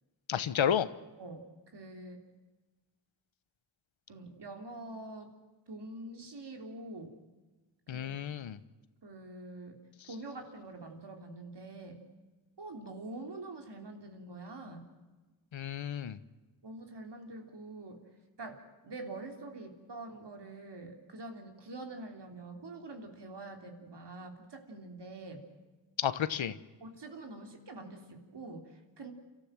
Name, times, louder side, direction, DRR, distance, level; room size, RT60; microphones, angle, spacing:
voice 1, 0.3-0.9 7.9-8.6 15.5-16.2 26.0-26.6, left 9 dB, 90° left, 14 dB, 1.1 m, -31 dB
voice 2, 1.2-1.5 1.7-2.2 4.1-5.3 5.7-7.2 7.9-8.1 9.0-9.8 10.0-12.0 12.6-14.9 16.6-18.0 18.4-25.4 26.8-29.1, right 2 dB, 65° right, 3 dB, 3.4 m, -45 dB
29.5 x 13.5 x 7.6 m, 1.2 s
wide cardioid pair, 85°, 45 cm